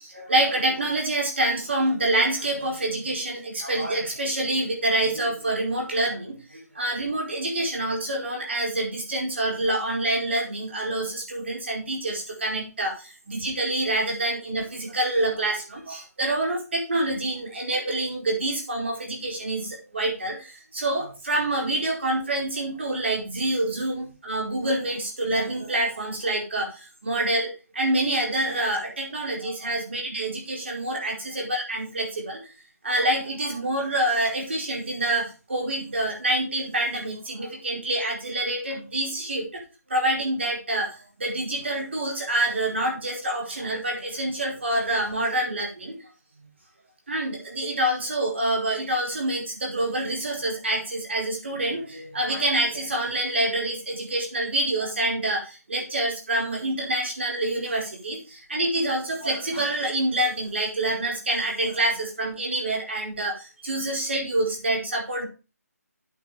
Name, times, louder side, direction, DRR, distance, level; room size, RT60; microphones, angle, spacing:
voice 1, 0.1-6.3 6.8-12.9 13.3-20.4 20.7-26.7 27.0-27.5 27.7-32.4 32.8-39.4 39.9-40.9 41.2-45.9 47.1-55.4 55.7-58.2 58.5-63.3 63.6-65.2, right 1 dB, 45° right, -1 dB, 4.7 m, -26 dB
8.9 x 7.4 x 5.1 m, 0.31 s
figure-of-eight pair, 180°, 9 cm